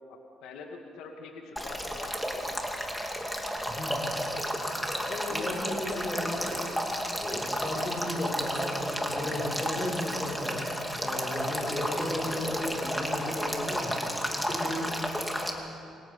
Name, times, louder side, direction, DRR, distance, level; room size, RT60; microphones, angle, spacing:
voice 1, 0.1-2.8 4.9-6.0, left 5 dB, 90° left, 2 dB, 2.3 m, -43 dB
Male speech man speaking / Stream / Trickle dribble, 1.6-15.5, equal, ahead, 2.5 m, -32 dB
voice 2, 3.7-4.0 5.3-6.6 7.2-14.0 14.3-15.0, left 1 dB, 20° left, -1 dB, 6.2 m, -35 dB
27.5 x 24.0 x 5.5 m, 2.6 s
cardioid pair, 115°, 0 cm